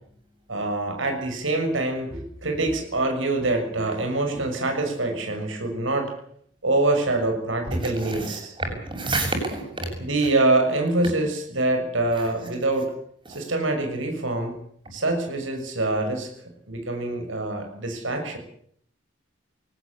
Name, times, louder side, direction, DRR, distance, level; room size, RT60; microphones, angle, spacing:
voice 1, 0.5-6.1 6.6-8.5 10.0-12.9 13.3-14.5 14.9-16.3 16.7-18.4, right 2 dB, 80° right, 6.4 m, -25 dB
voice 2, 7.7-9.9 12.2-12.3, right 2 dB, 25° right, 7.4 m, -29 dB
23.5 x 18.5 x 8.5 m
head